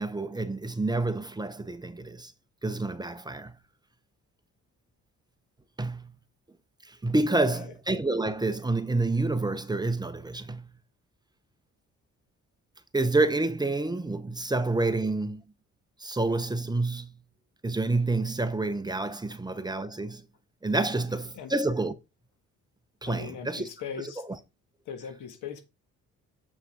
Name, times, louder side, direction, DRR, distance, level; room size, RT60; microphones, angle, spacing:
voice 1, 0.0-2.3 2.6-3.6 5.8-6.1 6.8-10.7 12.9-15.4 16.0-17.2 17.6-20.3 20.6-21.9 23.0-23.7 24.3-24.4, right 2 dB, 15° right, 0.8 m, -28 dB
voice 2, 7.4-7.7 21.3-21.5 23.0-24.2 24.9-25.6, left 7 dB, 80° left, 1.6 m, -39 dB
7.5 x 5.5 x 3.6 m
cardioid pair, 90°, 30 cm